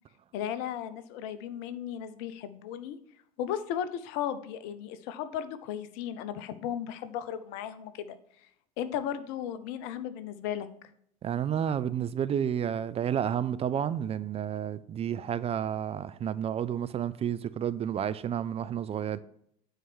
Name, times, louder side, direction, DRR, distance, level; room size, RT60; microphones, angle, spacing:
voice 1, 0.3-3.0 3.4-8.2 8.8-10.7, left 9 dB, 55° left, 0.8 m, -35 dB
voice 2, 11.2-19.2, right 9 dB, 30° right, 0.4 m, -31 dB
9.0 x 4.6 x 6.2 m
figure-of-eight pair, 65°, 21 cm